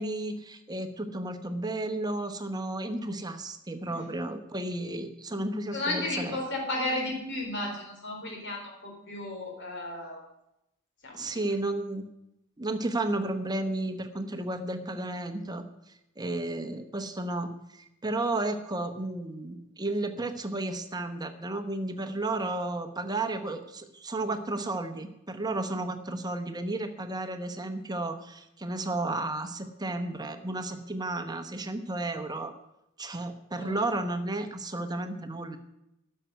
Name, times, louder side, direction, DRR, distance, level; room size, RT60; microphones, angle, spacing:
voice 1, 0.0-6.4 11.1-12.1 12.6-15.6 16.2-32.5 33.0-35.6, right 2 dB, 20° right, 7 dB, 1.0 m, -33 dB
voice 2, 5.7-10.2 11.0-11.6 33.6-33.9, left 2 dB, 60° left, 1 dB, 3.9 m, -34 dB
12.5 x 6.6 x 9.2 m, 0.84 s
head